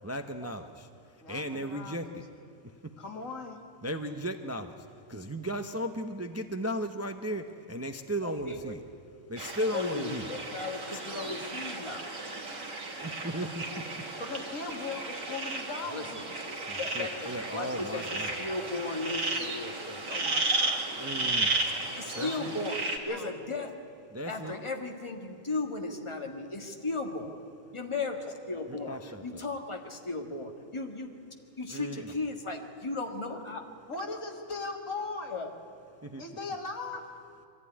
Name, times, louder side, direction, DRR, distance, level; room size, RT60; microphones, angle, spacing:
voice 1, 0.0-2.2 2.6-2.9 3.8-8.8 9.3-10.3 13.0-13.8 16.7-18.4 21.0-21.6 22.1-22.6 24.1-24.5 28.7-29.4 31.7-32.1 36.0-36.2, equal, 15° right, 7 dB, 0.7 m, -36 dB
voice 2, 1.2-2.2 3.0-3.6 11.1-11.4 13.7-13.8 14.2-16.3 22.1-22.4 23.1-23.3 24.3-24.6 33.9-35.4 36.2-37.0, left 3 dB, 80° left, 3 dB, 2.4 m, -39 dB
voice 3, 8.2-8.7 9.7-12.1 15.9-16.0 16.8-18.1 18.4-20.8 21.9-23.7 24.3-27.4 27.7-31.2 31.6-33.6 35.3-35.5, left 3 dB, 25° left, 3 dB, 1.8 m, -36 dB
sound 1, 9.4-23.0, right 2 dB, 80° right, 2.5 m, -34 dB
23.0 x 15.0 x 9.8 m, 2.5 s
omnidirectional pair, 1.3 m